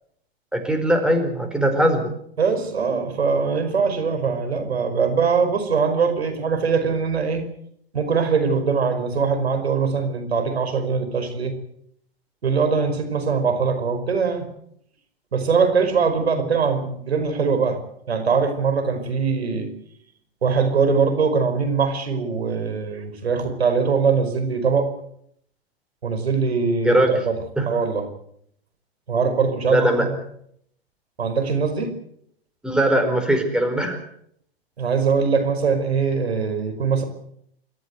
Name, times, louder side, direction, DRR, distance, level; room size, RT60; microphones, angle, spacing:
voice 1, 0.5-2.1 26.8-27.2 27.6-27.7 29.7-30.1 32.6-34.0, right 1 dB, 5° right, 4 dB, 4.6 m, -20 dB
voice 2, 2.4-7.5 7.9-11.5 12.4-14.5 15.3-17.8 18.1-19.7 20.4-24.9 26.0-27.4 27.7-28.1 29.1-30.2 31.2-31.9 34.8-37.0, right 5 dB, 90° right, 8 dB, 5.2 m, -22 dB
26.5 x 14.0 x 8.1 m, 0.70 s
hypercardioid pair, 120°, 31 cm